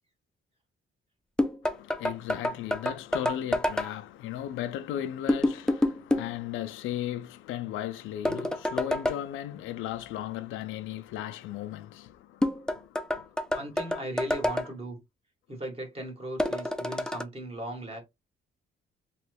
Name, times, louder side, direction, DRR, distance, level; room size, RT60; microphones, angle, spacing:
sound 1, 1.4-3.9 5.3-6.3 8.2-9.2 12.4-14.7 16.4-17.2, left 1 dB, 5° left, 0.4 m, -28 dB
voice 1, 1.6-13.6 13.9-14.1, left 12 dB, 85° left, 0.4 m, -36 dB
voice 2, 13.5-15.0 15.5-18.0, right 1 dB, 30° right, 1.7 m, -37 dB
3.0 x 2.4 x 3.3 m
cardioid pair, 90°, 20 cm